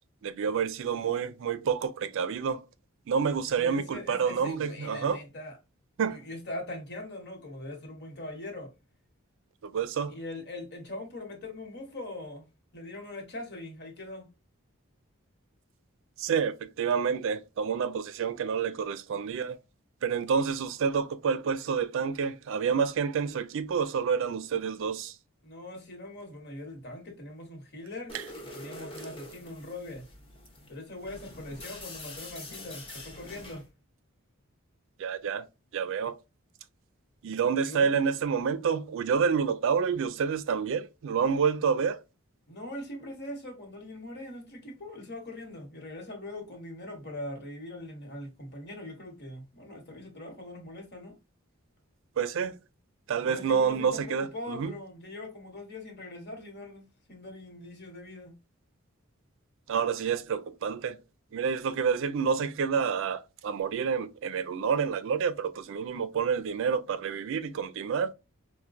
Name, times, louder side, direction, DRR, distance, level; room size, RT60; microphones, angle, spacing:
voice 1, 0.2-2.6 3.1-5.2 6.0-6.2 9.6-10.1 16.2-19.6 20.0-25.2 28.1-28.2 35.0-35.4 35.7-36.2 37.2-42.0 52.2-52.6 53.1-54.7 59.7-61.0 61.3-68.1, right 6 dB, 65° right, 0.4 m, -28 dB
voice 2, 3.5-5.6 6.1-8.7 10.1-12.4 12.7-14.3 25.4-30.1 30.7-33.6 37.6-38.0 42.5-51.2 53.3-56.8 57.1-58.3, left 1 dB, 55° left, 1.2 m, -41 dB
sound 1, 28.1-33.7, left 1 dB, 25° left, 0.8 m, -45 dB
4.3 x 2.2 x 2.5 m
head